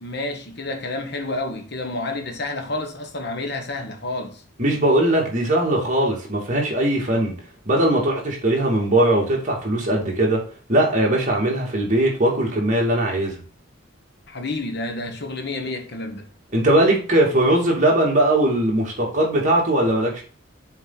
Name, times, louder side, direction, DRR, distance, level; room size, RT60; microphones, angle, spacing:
voice 1, 0.0-4.4 14.3-16.3, left 2 dB, 55° left, 1.3 m, -29 dB
voice 2, 4.6-7.4 7.7-10.4 10.7-13.4 16.5-20.2, right 1 dB, 35° right, 2.7 m, -20 dB
7.2 x 4.5 x 4.1 m
head